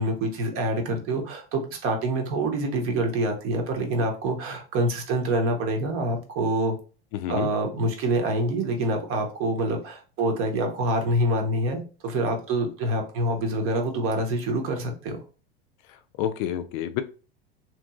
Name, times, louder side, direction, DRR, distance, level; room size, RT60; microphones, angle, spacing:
voice 1, 0.0-6.8 7.3-15.2, right 1 dB, 45° right, 4 dB, 0.9 m, -26 dB
voice 2, 7.1-7.5 15.9-17.0, left 10 dB, 55° left, 9 dB, 0.4 m, -29 dB
2.9 x 2.5 x 2.4 m, 0.35 s
hypercardioid pair, 90°, 30 cm